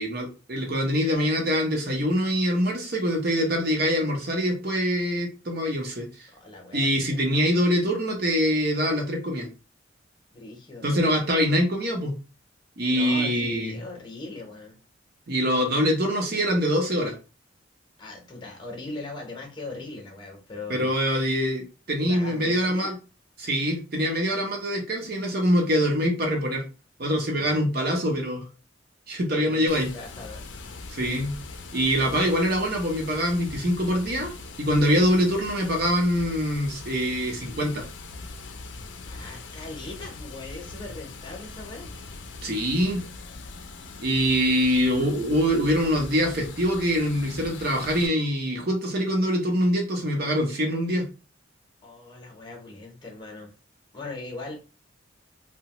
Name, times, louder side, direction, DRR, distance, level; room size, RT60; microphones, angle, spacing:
voice 1, 0.0-6.1 6.7-9.5 10.8-12.1 12.8-13.7 15.3-17.1 20.7-22.9 23.4-26.6 27.0-28.4 29.1-29.9 30.9-31.3 31.7-34.3 34.6-37.8 42.4-43.0 44.0-51.1, equal, 50° right, 2 dB, 0.8 m, -24 dB
voice 2, 6.3-7.5 10.3-11.2 12.9-14.8 18.0-20.9 22.0-23.0 27.3-27.6 29.3-30.4 39.0-41.9 51.8-53.5 53.9-54.6, left 2 dB, 25° left, 1 dB, 0.8 m, -40 dB
Water, 29.7-48.1, left 3 dB, 65° left, 0.4 m, -41 dB
2.9 x 2.1 x 2.8 m, 0.34 s
head